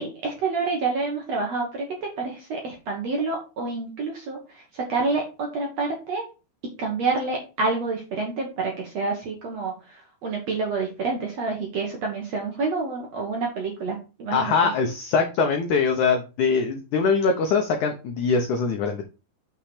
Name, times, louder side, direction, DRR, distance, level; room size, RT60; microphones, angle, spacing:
voice 1, 0.0-6.2 6.8-14.7, right 3 dB, 60° right, 1 dB, 1.8 m, -28 dB
voice 2, 14.3-19.0, left 5 dB, 80° left, 5 dB, 1.7 m, -22 dB
6.6 x 5.8 x 5.0 m, 0.31 s
omnidirectional pair, 4.8 m